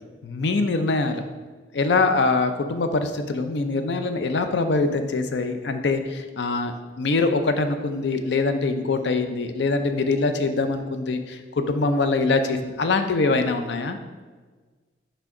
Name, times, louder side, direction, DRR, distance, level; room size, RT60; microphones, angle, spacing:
voice 1, 0.2-1.2 1.7-14.0, left 3 dB, 80° left, 8 dB, 0.5 m, -23 dB
6.1 x 3.3 x 4.7 m, 1.4 s
head